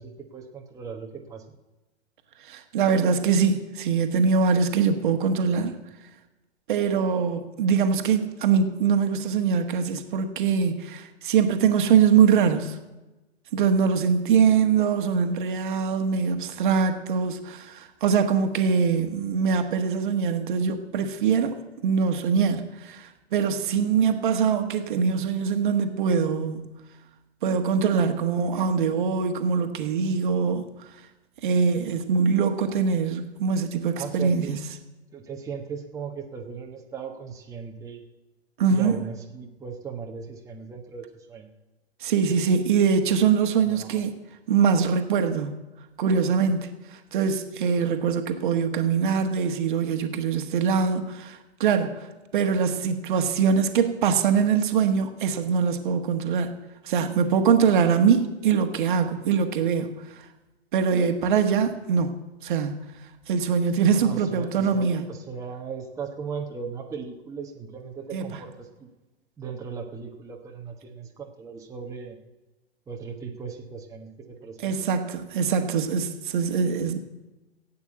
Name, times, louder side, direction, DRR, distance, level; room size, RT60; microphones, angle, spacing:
voice 1, 0.0-1.6 33.9-34.6 35.1-38.0 38.7-41.5 43.6-44.0 64.0-68.9 69.4-72.2 72.9-74.7, right 6 dB, 10° right, 1.2 m, -37 dB
voice 2, 2.4-5.8 6.7-12.8 13.5-26.8 27.4-30.9 31.4-34.6 38.6-39.0 42.0-44.1 44.5-45.5 46.0-56.6 56.8-60.3 60.7-62.2 62.4-62.7 63.3-65.1 68.1-68.3 74.6-77.0, right 6 dB, 45° right, 1.4 m, -23 dB
15.5 x 8.5 x 8.0 m
figure-of-eight pair, 105°, 33 cm